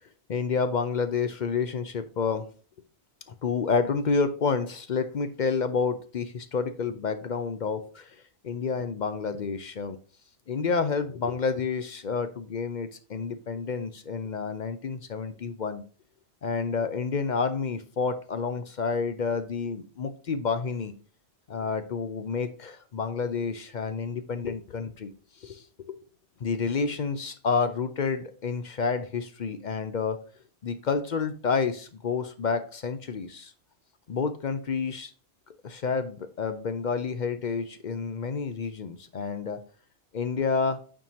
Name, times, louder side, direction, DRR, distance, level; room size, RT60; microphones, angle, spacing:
voice 1, 0.3-2.4 3.4-8.1 8.4-10.0 10.5-15.8 16.4-20.9 21.5-25.1 25.4-25.9 26.4-30.2 30.6-33.5 34.1-35.1 35.6-39.6 40.1-40.8, left 5 dB, 50° left, 10 dB, 0.6 m, -29 dB
8.7 x 4.6 x 2.8 m, 0.40 s
omnidirectional pair, 1.1 m